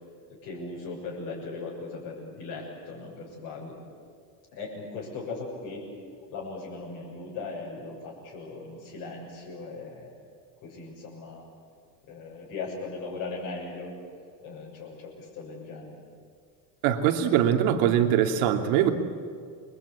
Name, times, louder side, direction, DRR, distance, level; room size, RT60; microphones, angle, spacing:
voice 1, 0.3-3.8 4.5-5.9 6.3-10.1 10.6-11.4 12.1-13.9 14.4-15.9, left 3 dB, 50° left, -6 dB, 7.1 m, -38 dB
voice 2, 16.8-18.9, right 10 dB, 65° right, 5 dB, 2.8 m, -22 dB
29.0 x 23.5 x 8.7 m, 2.2 s
cardioid pair, 170°, 42 cm